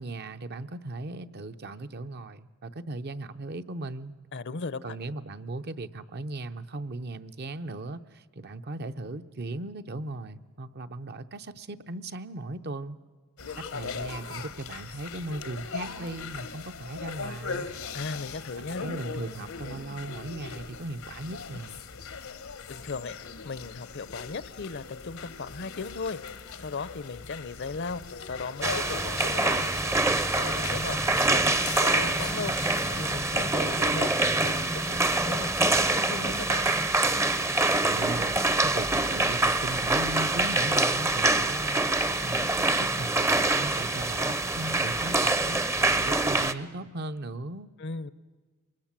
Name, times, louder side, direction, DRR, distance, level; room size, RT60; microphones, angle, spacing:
voice 1, 0.0-4.1 4.8-13.0 13.5-17.7 18.6-21.9 37.8-41.9 42.2-47.7, right 2 dB, 50° right, 10 dB, 0.7 m, -37 dB
voice 2, 4.3-4.8 17.9-18.8 22.7-26.2 26.6-29.6 30.3-32.5 32.9-34.1 34.4-36.7 47.8-48.1, left 4 dB, 60° left, 18 dB, 0.7 m, -37 dB
sound 1, 13.4-33.1, left 5 dB, 80° left, 1.1 m, -40 dB
sound 2, 28.6-46.5, right 2 dB, 15° right, 0.6 m, -25 dB
24.0 x 21.0 x 7.4 m, 1.3 s
head